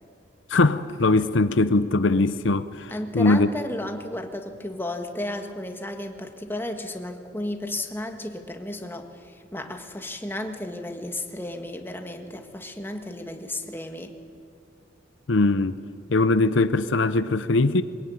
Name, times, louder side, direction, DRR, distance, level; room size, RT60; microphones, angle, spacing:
voice 1, 0.5-3.5 15.3-15.8 16.1-17.8, left 2 dB, 75° left, 0.7 m, -21 dB
voice 2, 2.9-14.1, left 1 dB, 10° left, 1.7 m, -33 dB
22.0 x 21.5 x 9.4 m
head